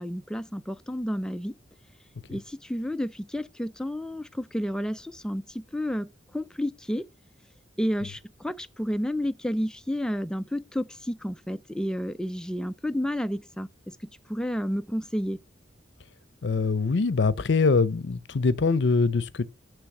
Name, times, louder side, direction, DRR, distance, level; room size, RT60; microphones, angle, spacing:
voice 1, 0.0-1.5 2.3-6.1 6.3-7.0 7.8-14.0 14.3-15.4, equal, 5° left, 0.3 m, -31 dB
voice 2, 16.4-19.4, left 4 dB, 70° left, 0.6 m, -23 dB
9.8 x 3.4 x 5.9 m
head